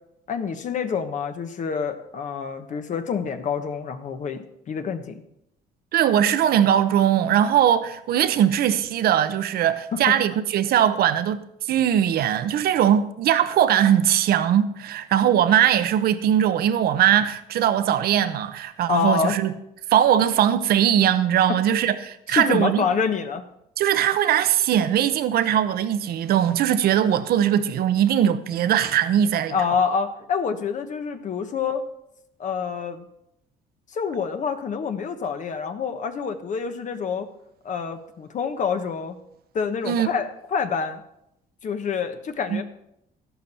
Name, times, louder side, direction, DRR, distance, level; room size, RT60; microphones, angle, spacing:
voice 1, 0.3-5.2 9.9-10.0 10.3-10.4 18.9-19.4 21.5-21.6 22.3-23.5 29.5-31.9 32.4-33.0 33.9-37.3 37.6-39.2 39.5-41.0 41.6-42.6, left 6 dB, 45° left, 1.2 m, -27 dB
voice 2, 5.9-19.5 19.9-22.8 23.8-29.6 39.8-40.1 42.5-42.6, right 10 dB, 65° right, 0.9 m, -20 dB
13.0 x 11.5 x 4.3 m
cardioid pair, 110°, 17 cm